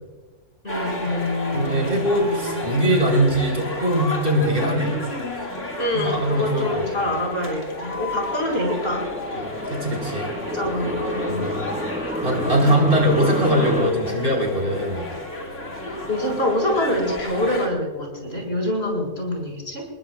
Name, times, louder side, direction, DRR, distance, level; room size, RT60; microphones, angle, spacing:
voice 1, 0.6-2.6 5.8-9.5 10.3-11.5 15.8-19.9, left 1 dB, 50° left, 0 dB, 5.2 m, -26 dB
sound 1, 0.7-17.7, left 2 dB, 70° left, 3.1 m, -32 dB
voice 2, 1.5-5.0 5.9-6.8 9.4-10.4 11.3-11.7 12.2-15.0, right 1 dB, 50° right, -1 dB, 4.8 m, -21 dB
sound 2, 7.5-13.9, equal, 5° right, 1.3 m, -31 dB
28.5 x 20.0 x 2.4 m, 1.3 s
omnidirectional pair, 1.3 m